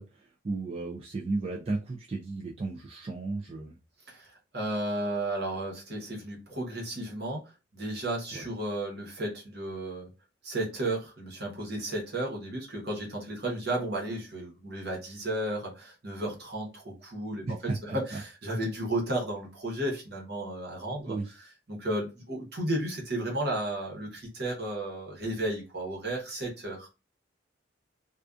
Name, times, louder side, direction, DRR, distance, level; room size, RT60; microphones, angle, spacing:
voice 1, 0.0-3.8 8.3-8.5 17.5-18.2 21.0-21.3, right 3 dB, 30° right, 0.3 m, -34 dB
voice 2, 4.1-10.1 10.4-26.9, right 1 dB, 55° right, 0.9 m, -33 dB
2.3 x 2.3 x 2.4 m
head